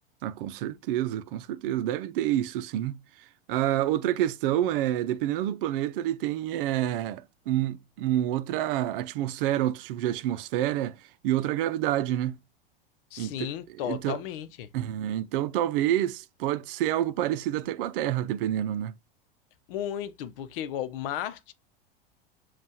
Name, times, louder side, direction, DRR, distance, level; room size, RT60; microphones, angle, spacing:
voice 1, 0.2-3.0 3.5-11.0 11.2-12.4 13.2-13.5 13.8-14.2 14.7-18.9, right 12 dB, 65° right, 0.6 m, -28 dB
voice 2, 13.1-14.7 19.7-21.5, left 11 dB, 65° left, 0.7 m, -34 dB
7.3 x 2.4 x 2.8 m
hypercardioid pair, 95°, 29 cm